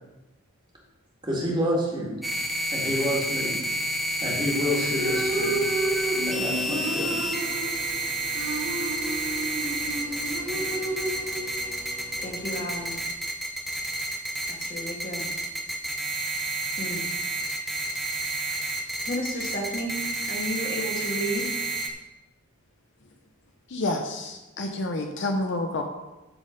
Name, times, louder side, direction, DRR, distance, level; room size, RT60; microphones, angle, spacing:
voice 1, 1.2-2.2 2.7-3.6 4.2-5.6 6.3-7.1, equal, 20° right, -3 dB, 2.1 m, -28 dB
sound 1, 2.2-21.9, right 1 dB, ahead, 0.7 m, -30 dB
sound 2, 4.8-13.0, right 2 dB, 65° right, 1.9 m, -32 dB
voice 2, 10.1-10.6 12.2-12.9 14.5-15.3 16.8-17.0 19.1-20.0 20.3-21.6, equal, 40° left, -2 dB, 1.9 m, -33 dB
voice 3, 23.7-25.8, left 2 dB, 55° left, 4 dB, 0.7 m, -29 dB
12.5 x 4.3 x 5.2 m, 1.1 s
head